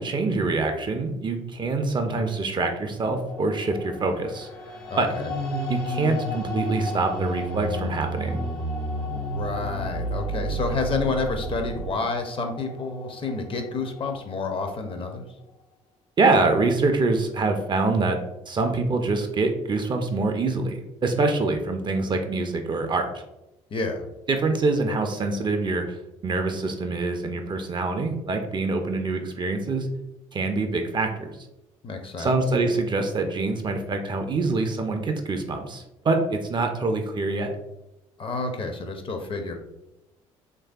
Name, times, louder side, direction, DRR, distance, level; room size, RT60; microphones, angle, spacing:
voice 1, 0.0-4.5 5.0-5.1 5.7-8.4 16.2-18.2 18.5-23.2 24.3-26.0 26.2-29.9 30.3-31.3 32.2-37.5, right 3 dB, 30° right, 5 dB, 0.4 m, -25 dB
sound 1, 3.3-15.5, left 3 dB, 60° left, 1.0 m, -38 dB
voice 2, 4.9-5.3 9.0-15.2 23.7-24.0 31.8-32.3 38.2-39.5, left 3 dB, 30° left, 5 dB, 0.5 m, -29 dB
sound 2, 5.1-11.9, right 1 dB, 75° right, 0.6 m, -31 dB
3.1 x 2.6 x 2.3 m, 0.90 s
figure-of-eight pair, 55°, 17 cm